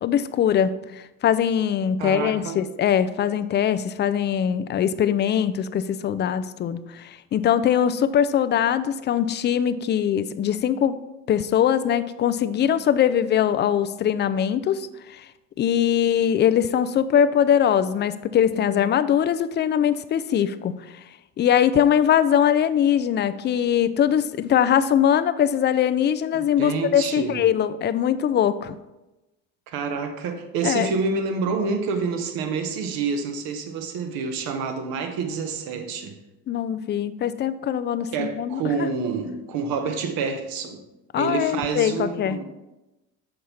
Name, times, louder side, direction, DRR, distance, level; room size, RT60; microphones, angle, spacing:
voice 1, 0.0-11.0 11.3-15.3 15.6-20.7 21.4-28.8 30.6-30.9 36.5-38.9 41.1-42.4, left 9 dB, 30° left, 13 dB, 0.4 m, -22 dB
voice 2, 2.0-2.6 26.3-27.4 29.7-36.2 38.1-40.8 41.2-42.4, right 4 dB, 60° right, 7 dB, 1.2 m, -28 dB
6.5 x 5.4 x 4.3 m, 1.0 s
hypercardioid pair, 75°, 40 cm